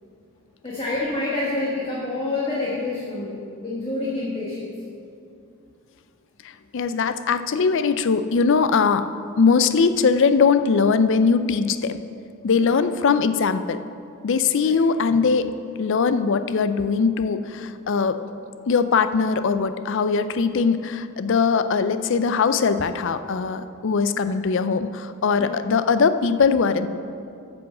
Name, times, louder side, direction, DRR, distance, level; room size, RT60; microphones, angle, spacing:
voice 1, 0.6-4.7 9.6-9.7 12.5-12.8 14.6-14.8 25.4-25.6, left 2 dB, 25° left, -6 dB, 1.3 m, -28 dB
voice 2, 6.4-9.1 9.4-12.0 12.4-13.8 14.2-15.5 15.8-18.2 18.7-26.9, left 5 dB, 60° left, 11 dB, 0.4 m, -21 dB
9.6 x 6.1 x 7.2 m, 2.5 s
head